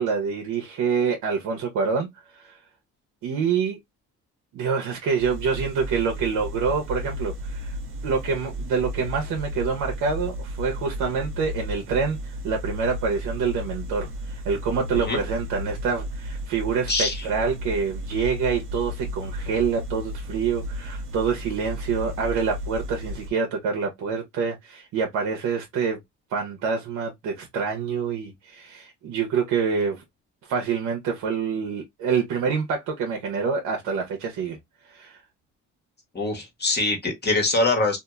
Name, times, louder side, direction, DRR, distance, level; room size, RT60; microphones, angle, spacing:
voice 1, 0.0-2.6 3.2-3.8 4.5-7.8 8.0-26.0 26.3-30.0 30.4-34.6 34.8-35.2, right 5 dB, 85° right, 0.8 m, -26 dB
sound 1, 5.2-23.3, equal, 45° right, 0.7 m, -34 dB
voice 2, 36.1-38.0, left 2 dB, 35° left, 1.3 m, -23 dB
2.8 x 2.5 x 2.3 m
cardioid pair, 90°, 30 cm